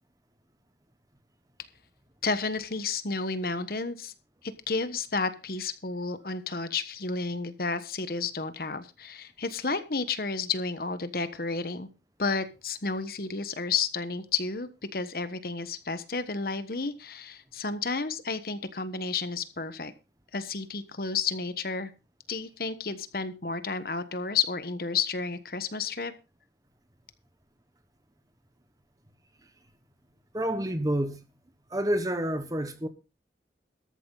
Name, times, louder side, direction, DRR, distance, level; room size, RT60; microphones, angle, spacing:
voice 1, 2.2-4.1 4.4-11.9 12.2-19.9 20.3-21.9 22.3-26.1, left 4 dB, 55° left, 1.2 m, -31 dB
voice 2, 30.3-31.2 31.7-32.9, right 1 dB, 20° right, 1.3 m, -28 dB
13.5 x 11.0 x 4.0 m
head